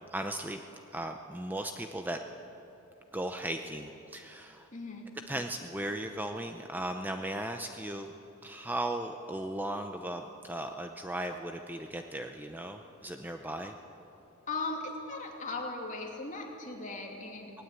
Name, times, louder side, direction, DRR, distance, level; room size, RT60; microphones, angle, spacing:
voice 1, 0.1-0.6 0.9-2.2 3.1-4.7 5.3-8.1 8.4-13.7, right 1 dB, 10° right, 5 dB, 0.7 m, -37 dB
voice 2, 4.7-5.1 14.5-17.5, left 3 dB, 35° left, 1 dB, 2.7 m, -38 dB
18.5 x 18.5 x 8.3 m, 2.9 s
head